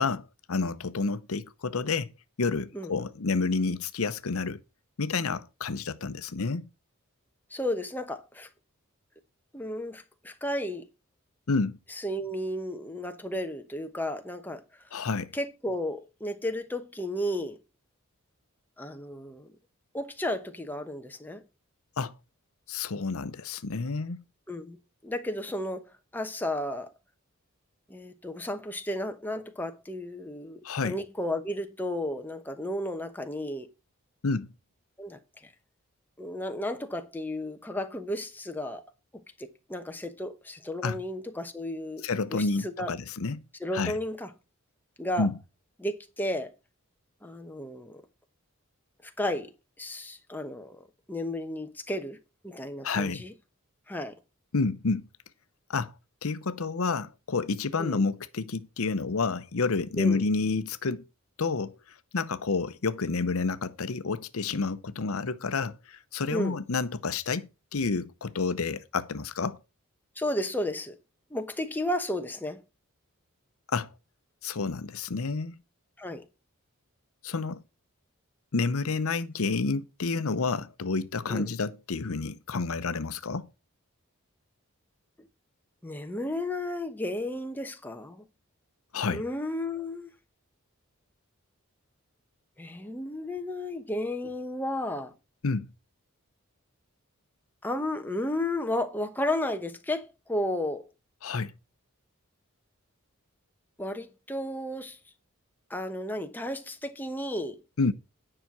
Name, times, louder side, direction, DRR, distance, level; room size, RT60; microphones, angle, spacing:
voice 1, 0.0-2.1 2.4-4.6 5.0-6.7 11.5-11.8 14.9-15.3 22.0-22.1 22.7-24.2 30.6-31.0 34.2-34.5 40.8-41.0 42.0-43.4 43.7-44.0 45.2-45.3 52.8-53.2 54.5-55.0 55.7-55.9 56.2-61.0 61.4-61.7 62.1-69.6 73.7-73.9 74.4-75.6 77.2-77.6 78.5-83.5 88.9-89.2 95.4-95.7 101.2-101.5 107.8-107.9, left 4 dB, 75° left, 0.7 m, -29 dB
voice 2, 7.5-8.5 9.5-10.9 11.9-14.6 15.3-17.6 18.8-19.5 19.9-21.4 24.5-24.8 25.0-25.8 26.1-26.9 27.9-33.7 35.0-35.2 36.2-38.8 39.4-42.9 43.6-44.3 45.0-45.3 45.8-46.5 47.2-48.0 49.0-49.5 49.8-52.2 52.4-53.3 53.9-54.2 57.8-58.0 60.0-60.2 66.3-66.6 70.2-70.9 71.3-72.6 76.0-76.2 81.3-81.5 85.8-88.3 89.1-90.1 92.6-95.1 97.6-100.9 103.8-105.0 105.7-107.6, left 1 dB, 10° left, 0.9 m, -33 dB
10.0 x 5.7 x 6.0 m
head